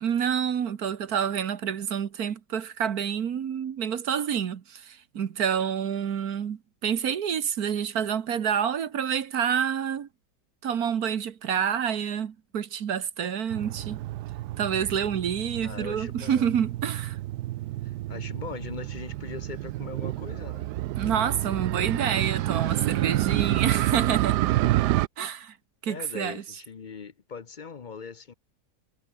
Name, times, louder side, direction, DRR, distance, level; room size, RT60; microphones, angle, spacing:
voice 1, 0.0-10.1 10.6-14.0 14.6-17.2 21.0-24.4 25.2-25.6 25.8-26.4, right 8 dB, 65° right, 1.7 m, -28 dB
Motorcycle, 13.5-25.1, right 15 dB, 85° right, 1.2 m, -29 dB
voice 2, 15.6-16.5 17.8-20.7 25.9-28.3, left 5 dB, 40° left, 0.7 m, -40 dB
omnidirectional pair, 1.7 m